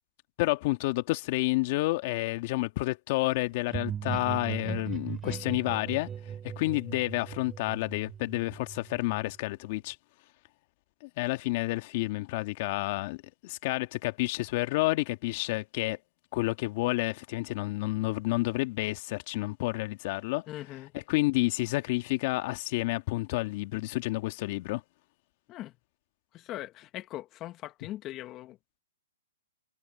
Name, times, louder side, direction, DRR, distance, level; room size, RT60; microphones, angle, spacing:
voice 1, 0.4-6.1 6.6-10.0 11.0-16.0 16.3-20.4 20.9-24.8, left 20 dB, 45° left, 1.9 m, -30 dB
sound 1, 3.7-9.3, right 8 dB, 15° right, 5.2 m, -38 dB
voice 2, 20.5-20.9 25.5-25.7 26.3-28.8, left 15 dB, 25° left, 1.6 m, -41 dB
hypercardioid pair, 140°, 0 cm